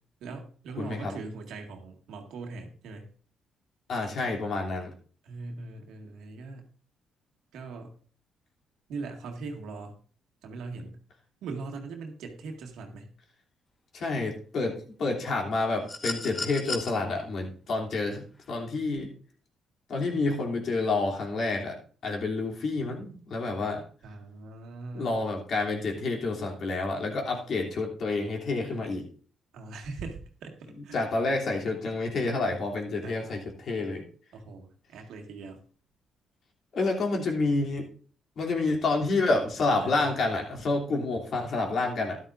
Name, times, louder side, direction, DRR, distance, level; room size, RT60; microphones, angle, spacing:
voice 1, 0.2-3.1 5.2-6.6 7.5-7.9 8.9-10.0 10.4-11.0 11.4-13.1 24.0-25.2 29.5-31.1 33.0-33.4 34.3-35.6 39.7-40.2, right 3 dB, 80° right, 3 dB, 1.9 m, -41 dB
voice 2, 0.8-1.2 3.9-4.9 13.9-19.1 19.9-21.8 22.0-23.8 24.9-29.0 30.9-34.0 36.7-37.9 38.4-42.2, left 3 dB, 60° left, 1 dB, 3.0 m, -29 dB
sound 1, 15.9-16.9 18.4-18.5, left 3 dB, 35° left, 2.1 m, -34 dB
13.0 x 11.5 x 2.6 m, 0.42 s
cardioid pair, 90°, 0 cm